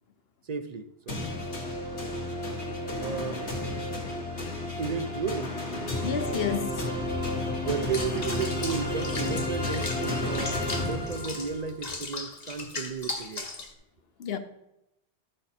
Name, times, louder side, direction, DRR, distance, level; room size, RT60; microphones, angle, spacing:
voice 1, 0.4-1.3 3.0-3.8 4.4-6.1 7.5-13.5, right 5 dB, 50° right, 0.5 m, -34 dB
sound 1, 1.1-11.7, left 1 dB, 80° left, 1.9 m, -32 dB
voice 2, 6.0-6.9 14.2-14.4, left 7 dB, 60° left, 1.0 m, -30 dB
Water / Bathtub (filling or washing), 7.9-13.7, left 3 dB, 40° left, 1.1 m, -38 dB
13.0 x 6.4 x 4.2 m
omnidirectional pair, 1.1 m